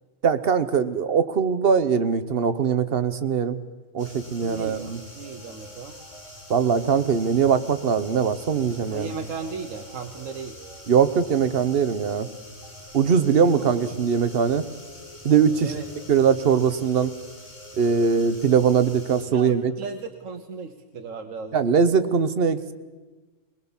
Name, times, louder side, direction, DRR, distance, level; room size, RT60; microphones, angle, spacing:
voice 1, 0.2-3.6 3.9-5.0 6.5-9.1 10.9-12.3 12.9-14.7 15.2-15.8 16.1-17.1 17.8-19.7 21.5-22.7, right 6 dB, 50° right, 11 dB, 1.1 m, -21 dB
sound 1, 4.0-20.6, equal, 70° left, 6.7 m, -49 dB
sound 2, 4.0-19.3, left 1 dB, 35° left, 3.1 m, -45 dB
voice 2, 4.4-5.9 8.9-10.5 13.4-13.9 15.6-15.9 19.3-21.6, right 5 dB, 80° right, 6 dB, 1.5 m, -36 dB
21.0 x 21.0 x 7.2 m, 1.3 s
omnidirectional pair, 1.3 m